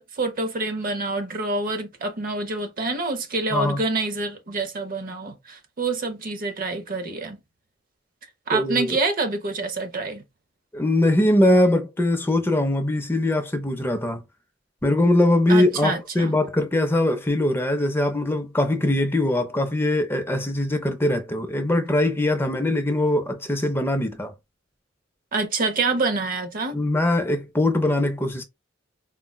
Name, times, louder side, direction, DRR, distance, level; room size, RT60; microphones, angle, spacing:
voice 1, 0.0-7.4 8.5-10.2 15.5-16.4 25.3-26.8, right 3 dB, 45° right, 0.6 m, -27 dB
voice 2, 3.5-3.8 8.5-9.0 10.7-14.2 14.8-24.3 26.7-28.4, left 1 dB, 10° left, 0.5 m, -22 dB
3.8 x 2.2 x 2.2 m
head